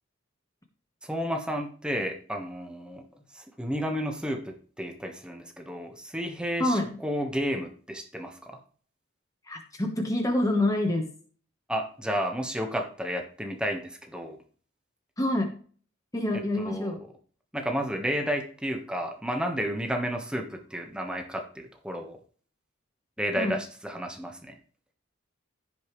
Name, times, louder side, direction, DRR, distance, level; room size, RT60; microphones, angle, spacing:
voice 1, 1.0-3.0 3.3-8.6 11.7-14.4 16.3-17.0 17.5-22.2 23.2-24.6, equal, 5° right, 3 dB, 1.4 m, -32 dB
voice 2, 9.5-11.1 15.2-15.5 16.1-17.0 23.4-23.5, left 1 dB, 15° left, 3 dB, 1.3 m, -26 dB
15.5 x 5.3 x 3.2 m, 0.43 s
head